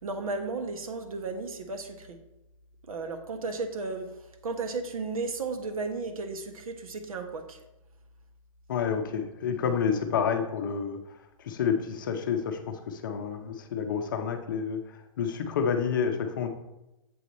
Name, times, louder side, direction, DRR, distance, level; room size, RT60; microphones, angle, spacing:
voice 1, 0.0-2.2 2.9-4.1 4.4-7.6, right 3 dB, 75° right, 6 dB, 1.3 m, -34 dB
voice 2, 8.7-11.0 11.4-14.8 15.2-16.5, left 7 dB, 35° left, 6 dB, 0.6 m, -29 dB
7.7 x 4.7 x 4.2 m, 0.94 s
hypercardioid pair, 175°, 18 cm